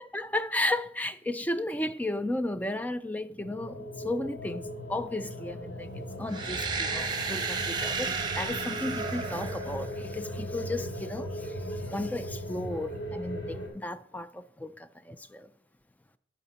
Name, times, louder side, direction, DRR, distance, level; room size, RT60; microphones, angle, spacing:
voice 1, 0.0-15.5, left 1 dB, 10° left, 0.3 m, -34 dB
sound 1, 3.4-13.7, equal, 75° left, 4.5 m, -38 dB
sound 2, 6.3-10.2, right 5 dB, 25° right, 0.8 m, -33 dB
11.0 x 5.0 x 5.8 m
head